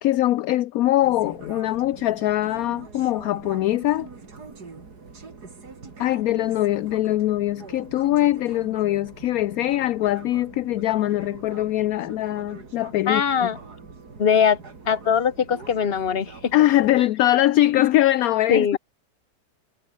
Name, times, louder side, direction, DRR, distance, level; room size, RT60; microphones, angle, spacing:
voice 1, 0.0-4.1 6.0-13.5 16.5-18.8, left 14 dB, 70° left, 1.0 m, -22 dB
sound 1, 1.0-17.0, right 4 dB, 75° right, 3.6 m, -43 dB
voice 2, 13.1-13.6 14.2-14.6 14.9-16.5 18.5-18.8, left 7 dB, 40° left, 1.4 m, -21 dB
omnidirectional pair, 1.7 m